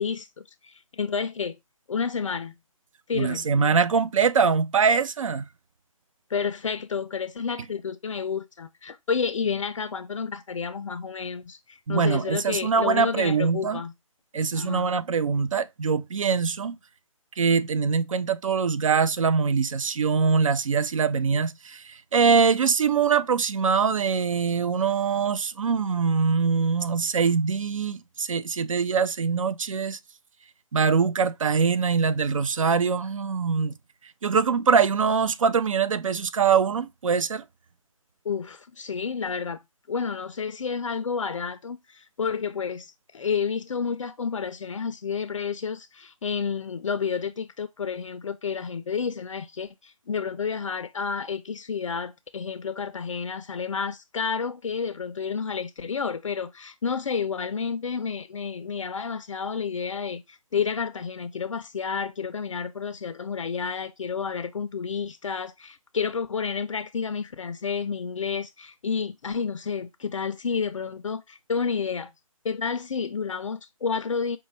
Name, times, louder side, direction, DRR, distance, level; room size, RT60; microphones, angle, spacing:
voice 1, 0.0-1.6 1.9-2.5 3.1-3.5 6.3-13.9 14.5-14.9 38.3-39.6 39.9-72.1 72.4-74.4, left 6 dB, 65° left, 0.4 m, -30 dB
voice 2, 3.1-5.5 11.9-13.8 14.3-16.8 17.4-30.0 30.7-33.7 34.2-37.4, right 5 dB, 70° right, 0.4 m, -23 dB
5.3 x 2.1 x 3.2 m
figure-of-eight pair, 155°, 18 cm